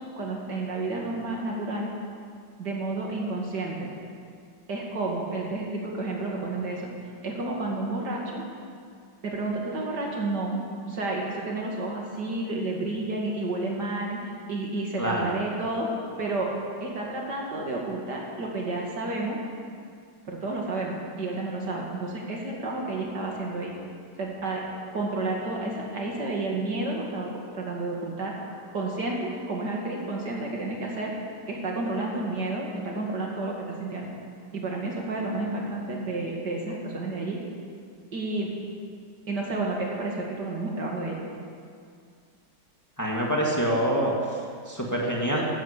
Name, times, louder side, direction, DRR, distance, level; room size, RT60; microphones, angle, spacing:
voice 1, 0.0-1.9 2.6-3.9 4.7-6.9 7.2-8.5 9.2-10.6 10.9-14.2 14.5-16.5 16.8-19.4 20.2-23.7 24.2-24.6 24.9-28.4 28.7-31.1 31.5-34.1 34.5-37.4 38.1-38.6 39.3-41.2, right 2 dB, 70° right, -1 dB, 2.9 m, -31 dB
voice 2, 43.0-44.4 44.7-45.5, equal, 10° left, -3 dB, 2.1 m, -26 dB
13.5 x 11.5 x 8.3 m, 2.2 s
omnidirectional pair, 1.9 m